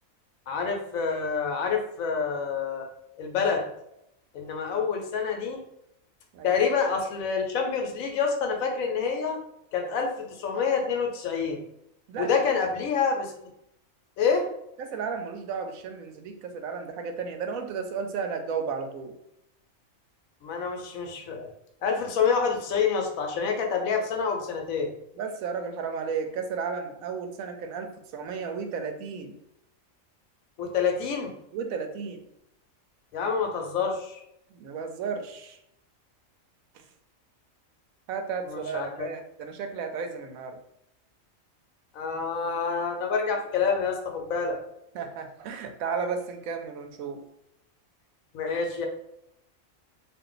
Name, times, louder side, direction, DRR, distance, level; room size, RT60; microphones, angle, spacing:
voice 1, 0.5-2.9 3.2-3.6 4.3-5.6 6.4-9.4 9.7-11.6 12.2-13.3 14.2-14.5 20.4-21.5 21.8-24.9 30.6-31.3 33.1-34.2 38.5-38.9 41.9-44.6 48.3-48.9, left 5 dB, 80° left, 2 dB, 1.1 m, -27 dB
voice 2, 12.1-12.5 14.8-19.1 25.2-29.3 31.5-32.2 34.5-35.6 38.1-40.6 44.9-47.2, right 5 dB, 90° right, 5 dB, 1.0 m, -33 dB
2.5 x 2.4 x 3.7 m, 0.81 s
omnidirectional pair, 1.4 m